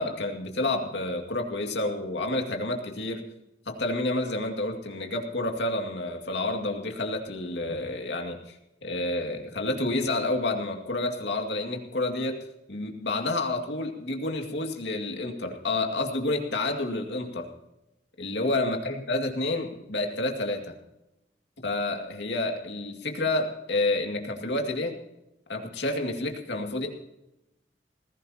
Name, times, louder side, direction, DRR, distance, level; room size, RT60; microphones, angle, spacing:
voice 1, 0.0-3.2 3.7-8.6 8.8-12.4 12.7-17.5 18.2-20.7 21.6-25.0 25.5-26.9, left 2 dB, 85° left, 3 dB, 2.3 m, -29 dB
20.0 x 16.5 x 2.9 m, 0.90 s
head